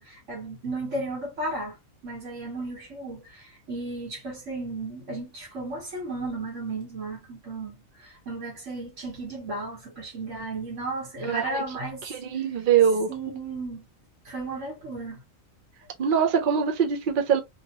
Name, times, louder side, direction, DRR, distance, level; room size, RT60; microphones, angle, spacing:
voice 1, 0.0-1.8 2.0-12.1 13.1-13.9 14.2-15.2, right 2 dB, 65° right, 1.5 m, -34 dB
voice 2, 11.3-11.6 12.1-13.1 16.0-17.4, right 7 dB, 50° right, 0.7 m, -23 dB
2.9 x 2.5 x 2.8 m
omnidirectional pair, 1.4 m